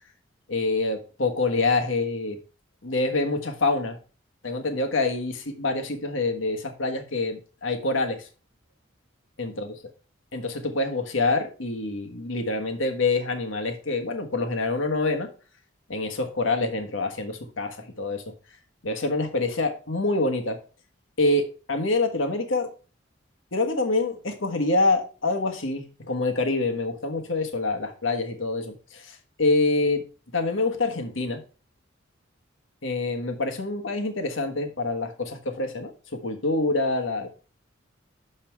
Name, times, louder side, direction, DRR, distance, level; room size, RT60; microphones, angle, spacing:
voice 1, 0.5-2.4 2.8-4.0 4.4-8.3 9.4-9.7 10.3-15.3 15.9-18.2 18.8-20.6 21.2-22.7 23.5-30.0 30.3-31.4 32.8-37.3, left 2 dB, 80° left, 5 dB, 1.4 m, -26 dB
6.7 x 5.5 x 4.5 m, 0.36 s
head